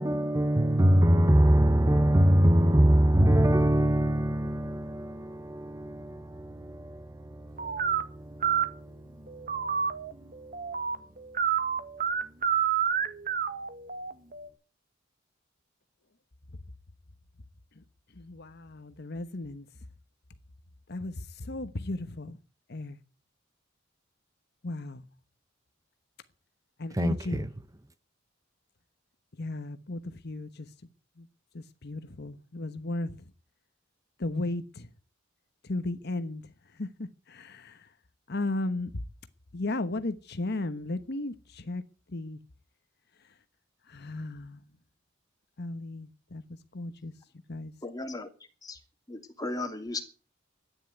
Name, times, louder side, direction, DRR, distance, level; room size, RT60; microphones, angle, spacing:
voice 1, 0.0-9.7 10.1-10.2 26.9-27.5, right 1 dB, 15° right, 0.7 m, -24 dB
sound 1, 7.6-8.0 8.4-8.7 9.3-14.5, right 8 dB, 45° right, 1.6 m, -29 dB
voice 2, 18.1-19.7 20.9-22.4 22.7-23.0 24.6-25.0 26.8-27.5 29.3-30.7 31.2-31.3 31.5-33.2 34.2-34.9 35.6-37.9 38.3-39.0 39.5-41.8 42.1-42.4 43.9-44.6 45.6-46.4 46.7-47.1 47.5-47.7, left 2 dB, 55° left, 1.1 m, -35 dB
voice 3, 47.8-48.3 48.6-48.8 49.1-50.0, left 2 dB, 20° left, 2.8 m, -35 dB
13.0 x 10.0 x 9.4 m
head